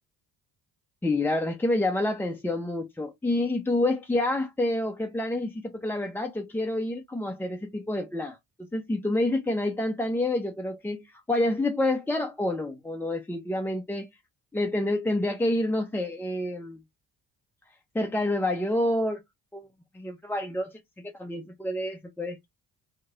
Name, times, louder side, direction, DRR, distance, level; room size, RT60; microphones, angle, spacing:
voice 1, 1.0-8.4 8.7-14.1 14.5-16.8 17.9-19.2 19.5-19.7 19.9-22.5, left 1 dB, 5° left, 0.3 m, -28 dB
3.0 x 2.7 x 2.4 m
hypercardioid pair, 50°, 47 cm